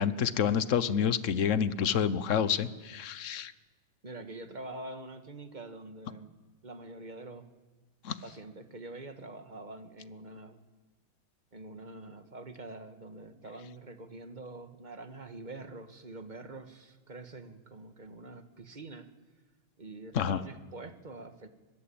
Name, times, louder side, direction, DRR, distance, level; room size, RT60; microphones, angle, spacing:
voice 1, 0.0-3.5 8.0-8.2 20.1-20.4, left 7 dB, 50° left, 15 dB, 1.0 m, -28 dB
voice 2, 4.0-6.3 6.6-7.5 8.2-10.6 11.5-19.1 19.8-21.5, right 2 dB, 25° right, 8 dB, 1.5 m, -45 dB
23.5 x 21.5 x 8.7 m, 1.2 s
omnidirectional pair, 2.3 m